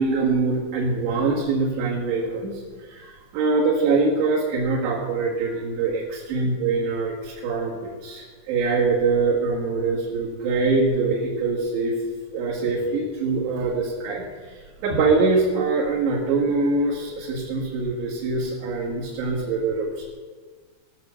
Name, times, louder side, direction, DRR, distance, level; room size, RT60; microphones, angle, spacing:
voice 1, 0.0-12.0 12.3-19.9, right 3 dB, 65° right, -5 dB, 3.9 m, -24 dB
18.5 x 6.7 x 6.9 m, 1.5 s
omnidirectional pair, 5.6 m